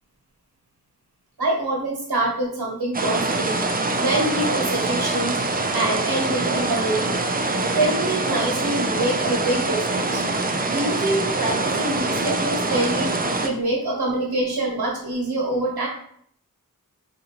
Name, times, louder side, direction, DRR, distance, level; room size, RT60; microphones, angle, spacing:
voice 1, 1.4-3.6 4.0-5.4 5.7-7.3 7.7-10.2 10.7-13.1 13.4-15.9, right 1 dB, 90° right, -1 dB, 1.1 m, -25 dB
sound 1, 2.9-13.5, right 2 dB, 25° right, 0.4 m, -24 dB
3.8 x 2.6 x 2.8 m, 0.64 s
wide cardioid pair, 50°, 36 cm